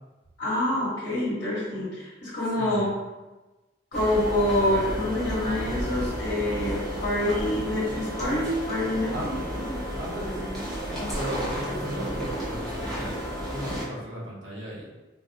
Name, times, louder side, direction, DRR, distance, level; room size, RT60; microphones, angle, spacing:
voice 1, 0.4-2.9 3.9-9.8, left 1 dB, 70° left, -8 dB, 1.0 m, -27 dB
voice 2, 2.6-3.0 9.1-9.3 10.0-13.2 13.5-14.9, right 1 dB, 70° right, -5 dB, 0.9 m, -36 dB
sound 1, 3.9-13.8, equal, ahead, 0.7 m, -32 dB
3.8 x 2.0 x 2.6 m, 1.1 s
head